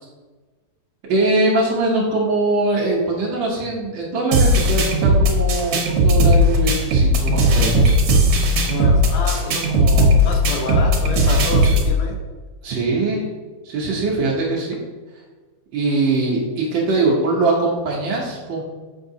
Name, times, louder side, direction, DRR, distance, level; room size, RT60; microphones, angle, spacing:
voice 1, 1.1-7.9 12.6-13.3 13.6-14.8 15.7-18.6, right 2 dB, 80° right, -4 dB, 1.0 m, -21 dB
sound 1, 4.3-11.9, equal, 65° right, 1.6 m, -16 dB
voice 2, 8.7-12.2, left 3 dB, 70° left, 1 dB, 2.1 m, -28 dB
7.1 x 5.6 x 2.7 m, 1.3 s
omnidirectional pair, 3.4 m